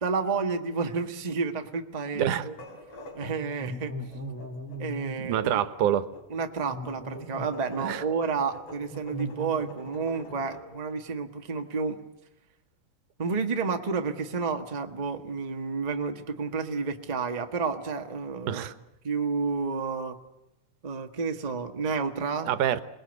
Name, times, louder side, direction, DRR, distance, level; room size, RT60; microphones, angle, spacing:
voice 1, 0.0-2.5 3.1-3.9 4.8-5.6 6.3-12.0 13.2-18.6 19.0-20.2 20.8-22.5, right 5 dB, 25° right, 5 dB, 0.9 m, -30 dB
voice 2, 2.1-2.5 5.2-6.1 7.8-8.0 18.5-18.7 22.5-22.8, right 10 dB, 85° right, 13 dB, 2.5 m, -26 dB
sound 1, 2.6-10.7, equal, 50° left, 4.0 m, -46 dB
sound 2, 3.6-5.2 5.7-5.9 6.7-8.2 8.9-9.8 10.0-10.9, equal, 5° left, 1.6 m, -39 dB
27.5 x 20.0 x 8.2 m, 0.91 s
omnidirectional pair, 3.5 m